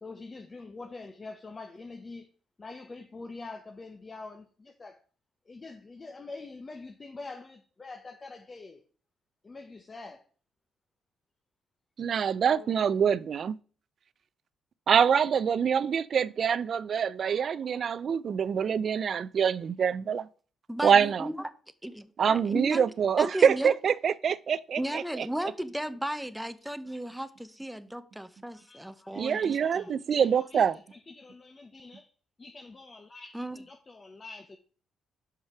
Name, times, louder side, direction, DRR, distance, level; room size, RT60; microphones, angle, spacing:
voice 1, 0.0-2.3 2.6-5.0 5.5-8.8 9.4-10.2 12.5-12.7 28.5-29.9 30.2-32.1 32.4-34.6, left 3 dB, 30° left, 0.8 m, -45 dB
voice 2, 12.0-13.6 14.9-20.3 20.8-21.3 22.2-25.3 29.1-30.8, right 7 dB, 55° right, 0.4 m, -25 dB
voice 3, 20.7-21.5 21.8-22.9 23.2-23.8 24.8-30.0 33.3-33.6, right 1 dB, 5° right, 0.6 m, -35 dB
5.6 x 4.9 x 5.8 m
cardioid pair, 90°, 0 cm